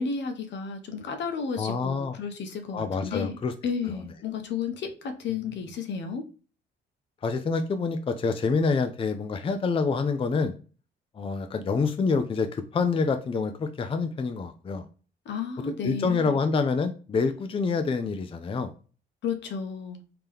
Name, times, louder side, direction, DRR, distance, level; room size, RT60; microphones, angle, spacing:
voice 1, 0.0-3.4 3.6-6.2 15.3-16.4 19.2-20.0, left 6 dB, 65° left, 0.8 m, -32 dB
voice 2, 1.6-2.2 2.7-3.5 3.8-3.9 5.3-5.4 7.2-10.5 11.1-14.9 15.8-18.7, left 4 dB, 25° left, 0.4 m, -27 dB
3.7 x 2.9 x 3.3 m
cardioid pair, 90°, 20 cm